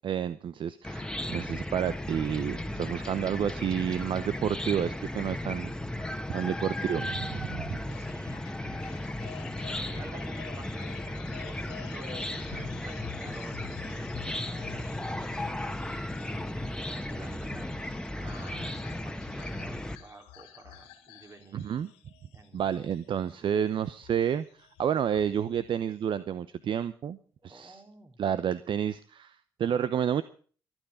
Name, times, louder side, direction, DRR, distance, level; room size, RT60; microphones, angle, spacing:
voice 1, 0.0-7.8 21.5-21.9 22.5-24.4 24.8-27.2 27.4-27.8 28.2-30.2, right 8 dB, 60° right, 14 dB, 0.8 m, -30 dB
Chicken rooster / Cricket, 0.8-20.0, left 1 dB, 10° left, 1.6 m, -35 dB
sound 1, 7.2-26.0, left 10 dB, 80° left, 2.1 m, -49 dB
voice 2, 8.0-8.8 9.7-16.0 16.2-21.7 22.3-22.6 27.4-28.2, right 2 dB, 30° right, 5 dB, 3.7 m, -50 dB
24.0 x 9.1 x 5.0 m, 0.42 s
hypercardioid pair, 40°, 10 cm